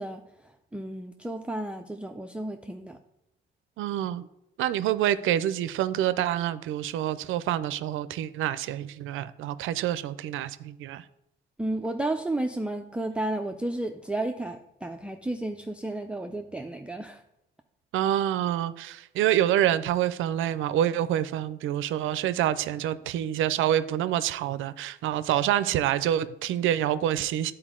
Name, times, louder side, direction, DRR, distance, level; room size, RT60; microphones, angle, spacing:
voice 1, 0.0-3.0 11.6-17.2, right 1 dB, 5° right, 4 dB, 0.4 m, -32 dB
voice 2, 3.8-4.3 4.6-11.0 17.9-27.5, right 11 dB, 80° right, 14 dB, 0.4 m, -27 dB
10.0 x 4.4 x 3.7 m, 0.82 s
cardioid pair, 90°, 20 cm